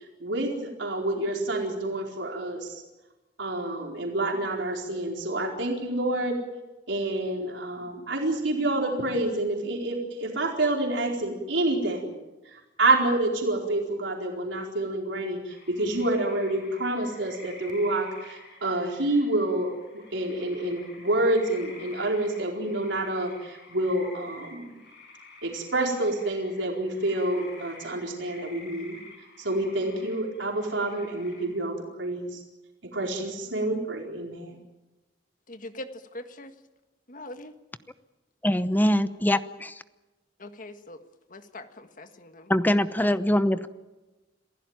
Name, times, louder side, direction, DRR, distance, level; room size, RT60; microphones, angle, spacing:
voice 1, 0.0-2.8 3.4-6.4 6.9-12.1 12.5-19.7 20.1-24.7 25.4-29.0 29.4-32.4 32.9-34.6, right 2 dB, 90° right, 0 dB, 4.5 m, -28 dB
sound 1, 15.5-31.5, left 2 dB, 65° left, 7.9 m, -50 dB
voice 2, 35.5-36.5 37.1-37.6 40.4-41.0 41.3-42.5 43.0-43.1, left 1 dB, 45° left, 8 dB, 1.7 m, -42 dB
voice 3, 38.4-39.8 42.5-43.7, left 1 dB, 10° left, 12 dB, 0.8 m, -23 dB
27.5 x 16.0 x 9.1 m, 1.1 s
head